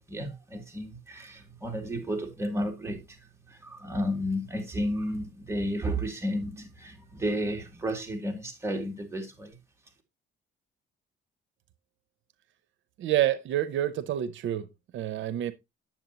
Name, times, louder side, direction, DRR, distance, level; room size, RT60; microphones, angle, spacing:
voice 1, 0.0-9.6, equal, 15° right, 2.5 m, -32 dB
voice 2, 13.0-14.7 14.9-15.5, right 12 dB, 75° right, 0.6 m, -28 dB
9.0 x 7.4 x 2.8 m
cardioid pair, 90°, 20 cm